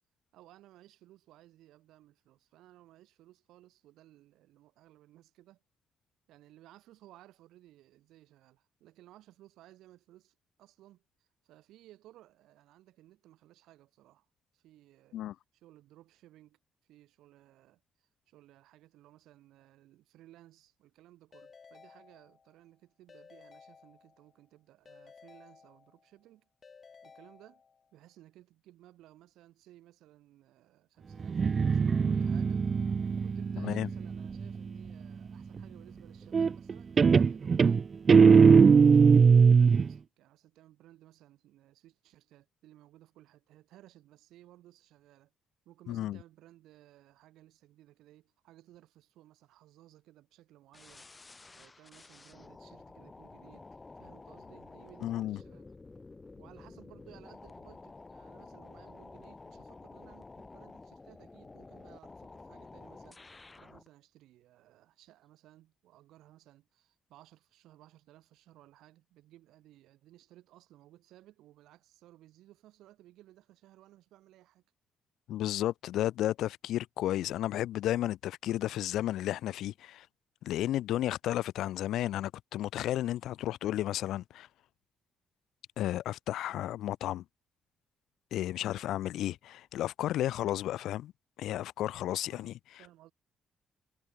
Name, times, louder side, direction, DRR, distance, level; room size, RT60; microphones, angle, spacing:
voice 1, 0.3-5.6 6.3-14.3 14.5-15.2 15.5-26.5 27.0-27.6 27.9-32.7 33.2-37.9 38.4-45.3 45.7-51.1 51.5-55.7 56.3-74.6 92.2-93.1, right 15 dB, 85° right, 7.1 m, -59 dB
Keyboard (musical) / Ringtone, 21.3-22.7 23.1-24.4 24.9-26.2 26.6-28.0, left 5 dB, 40° left, 2.9 m, -57 dB
Guitar, 31.2-34.8 36.3-36.7 37.0-39.9, right 5 dB, 40° right, 0.3 m, -21 dB
voice 2, 33.6-33.9 45.9-46.2 55.0-55.4 75.3-80.1 80.4-84.5 85.8-87.2 88.3-91.1 91.4-92.5, left 13 dB, 80° left, 0.8 m, -33 dB
sound 1, 50.7-63.9, left 3 dB, 25° left, 5.4 m, -51 dB
cardioid pair, 90°, 0 cm